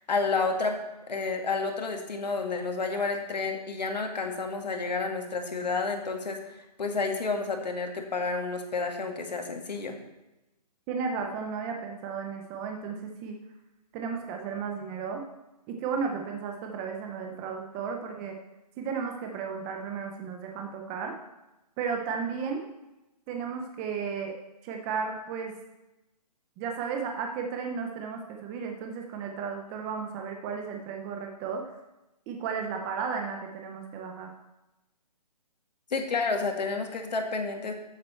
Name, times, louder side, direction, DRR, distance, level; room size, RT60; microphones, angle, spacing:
voice 1, 0.1-0.8 1.1-10.0 35.9-37.7, left 4 dB, 80° left, 3 dB, 2.0 m, -30 dB
voice 2, 10.9-13.4 13.9-15.2 15.7-18.4 18.8-21.1 21.8-22.6 23.3-24.3 24.6-25.5 26.6-31.6 32.3-34.3, right 6 dB, 10° right, 3 dB, 0.4 m, -34 dB
12.5 x 7.6 x 4.3 m, 0.96 s
hypercardioid pair, 160°, 21 cm